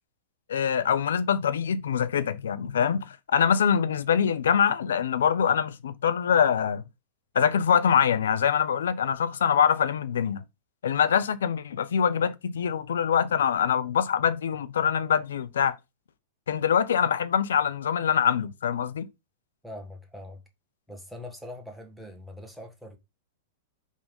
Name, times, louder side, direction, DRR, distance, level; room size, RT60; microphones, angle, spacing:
voice 1, 0.5-6.8 7.3-10.4 10.8-15.8 16.5-19.1, left 8 dB, 75° left, 0.7 m, -24 dB
voice 2, 19.6-20.4 20.9-23.0, left 1 dB, ahead, 1.6 m, -42 dB
5.1 x 3.7 x 5.2 m
hypercardioid pair, 110°, 0 cm